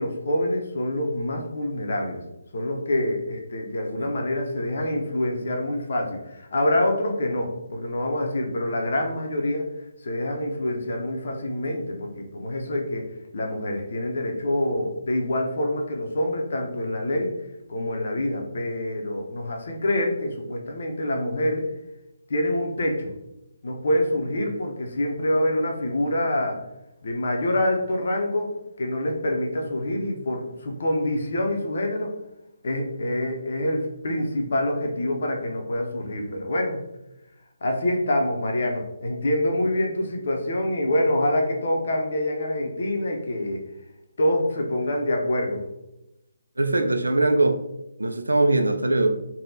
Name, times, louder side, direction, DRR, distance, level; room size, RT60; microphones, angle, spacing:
voice 1, 0.0-2.2 2.5-9.7 10.0-13.0 13.3-17.3 17.7-21.7 22.3-23.1 23.6-26.6 27.0-28.5 28.8-32.1 32.6-36.8 37.6-43.6 44.2-45.6, left 1 dB, 55° left, 2 dB, 0.6 m, -26 dB
voice 2, 46.6-47.6 48.0-49.1, right 2 dB, 80° right, 6 dB, 0.3 m, -21 dB
3.4 x 2.1 x 2.6 m, 0.90 s
figure-of-eight pair, 145°, 0 cm